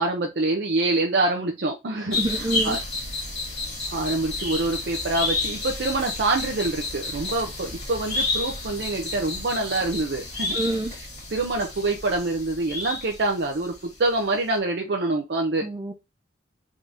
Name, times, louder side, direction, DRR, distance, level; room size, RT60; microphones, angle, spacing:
voice 1, 0.0-2.2 2.6-2.8 3.9-10.6 11.3-15.7, right 2 dB, 65° right, 1 dB, 0.6 m, -25 dB
voice 2, 2.0-2.8 10.5-10.9 15.6-15.9, right 1 dB, 20° right, 4 dB, 0.4 m, -27 dB
sound 1, 2.1-13.8 14.0-14.1, left 2 dB, 35° left, 1.8 m, -31 dB
3.7 x 2.7 x 3.3 m, 0.24 s
head